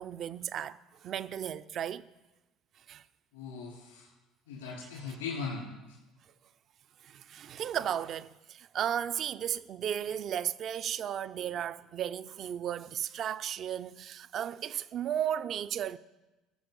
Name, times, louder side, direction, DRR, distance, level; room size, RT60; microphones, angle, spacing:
voice 1, 0.0-2.1 2.9-3.0 7.0-16.0, right 9 dB, 50° right, 0.4 m, -35 dB
voice 2, 3.3-4.1 4.5-6.0, left 5 dB, 80° left, 3.4 m, -39 dB
18.5 x 6.3 x 3.9 m
hypercardioid pair, 60°, 0 cm